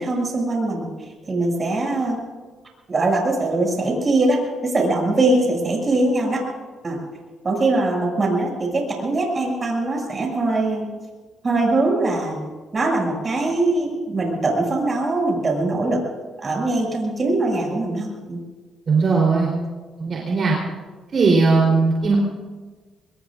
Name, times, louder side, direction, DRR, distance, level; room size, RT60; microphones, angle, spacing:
voice 1, 0.0-2.2 2.9-6.4 6.8-7.0 7.4-10.9 11.4-12.5 12.7-16.0 16.4-18.4, right 2 dB, 35° right, 0 dB, 6.8 m, -22 dB
voice 2, 18.9-19.5 20.0-20.5 21.1-22.1, right 4 dB, 50° right, -3 dB, 3.6 m, -18 dB
24.5 x 21.0 x 2.5 m, 1.3 s
cardioid pair, 90°, 0 cm